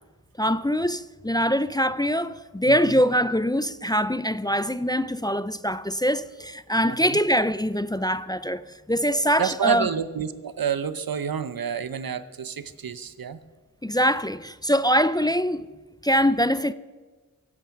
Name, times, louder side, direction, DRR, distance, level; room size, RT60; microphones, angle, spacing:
voice 1, 0.4-8.6 8.9-9.9 13.8-15.7 16.0-16.7, equal, 10° left, 0.5 m, -23 dB
voice 2, 2.7-3.0 6.8-7.2 9.4-13.4, right 7 dB, 75° right, 0.8 m, -29 dB
24.0 x 8.7 x 5.9 m
wide cardioid pair, 60°, 35 cm